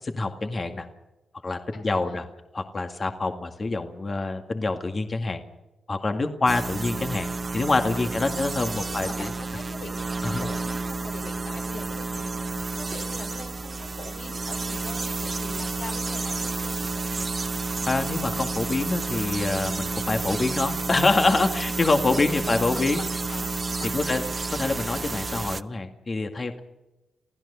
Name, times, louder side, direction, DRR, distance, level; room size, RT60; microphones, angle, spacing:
voice 1, 0.0-0.9 1.4-2.3 2.5-5.4 5.9-7.3 7.5-9.3 10.2-10.5 17.8-23.0 23.9-24.2 24.6-26.6, left 3 dB, 45° left, 5 dB, 2.1 m, -26 dB
voice 2, 1.7-2.2 8.0-8.4 8.9-17.3 22.1-23.5 23.8-24.3, left 3 dB, 80° left, 2 dB, 5.2 m, -43 dB
sound 1, 6.5-25.6, right 3 dB, 40° right, 0.9 m, -30 dB
28.5 x 16.0 x 7.0 m, 1.0 s
supercardioid pair, 50°, 0 cm